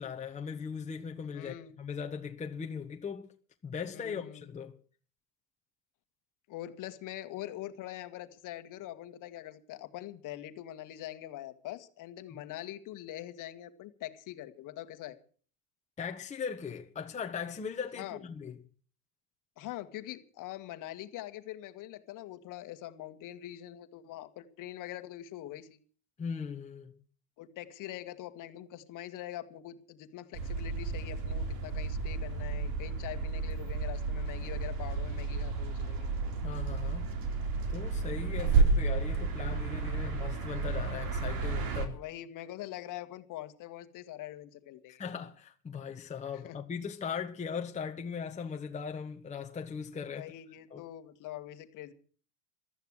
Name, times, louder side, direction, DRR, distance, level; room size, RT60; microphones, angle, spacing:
voice 1, 0.0-3.3 3.6-4.7 12.3-12.4 16.0-18.6 26.2-27.0 36.4-37.1 37.7-42.0 44.9-50.2 50.7-50.8, left 6 dB, 15° left, 1.3 m, -39 dB
voice 2, 1.3-1.8 3.9-4.5 6.5-15.2 18.0-18.2 19.6-25.8 27.4-36.1 41.9-45.0 46.4-46.6 50.1-51.9, left 13 dB, 40° left, 1.8 m, -43 dB
sound 1, 30.3-41.9, right 4 dB, 45° right, 4.0 m, -32 dB
15.0 x 13.0 x 6.4 m
supercardioid pair, 130°, 48 cm